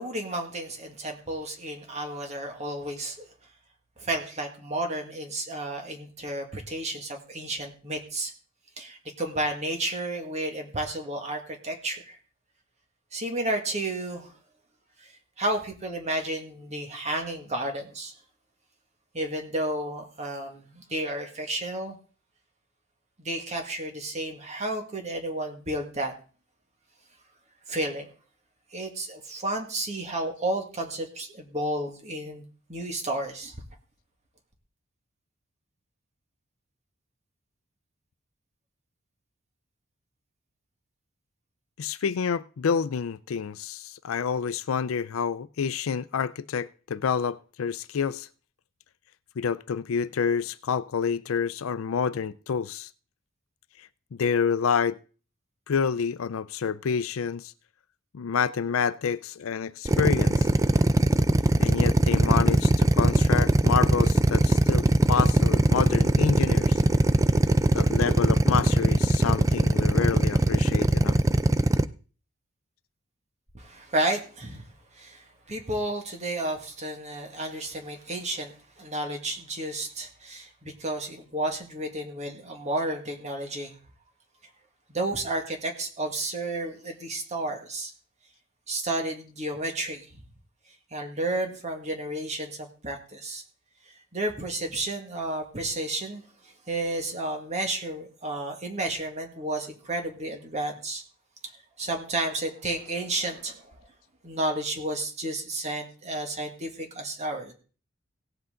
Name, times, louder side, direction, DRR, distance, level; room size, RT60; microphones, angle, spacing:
voice 1, 0.0-3.3 4.0-8.3 8.8-12.2 13.1-14.3 15.0-15.1 15.4-18.1 19.1-22.0 23.2-26.1 27.7-28.1 28.7-33.6 73.5-74.6 75.0-83.7 84.9-87.9 88.7-90.2 90.9-93.4 94.1-96.2 96.7-101.0 101.8-103.7 104.2-107.5, right 1 dB, 35° right, 1.9 m, -32 dB
voice 2, 41.8-48.3 49.4-52.9 53.8-55.0 55.7-57.5 58.1-60.5 61.6-66.8 67.7-71.2, left 6 dB, 75° left, 0.4 m, -28 dB
Drill, 59.9-71.8, right 1 dB, 15° right, 0.4 m, -20 dB
17.0 x 8.1 x 3.8 m
head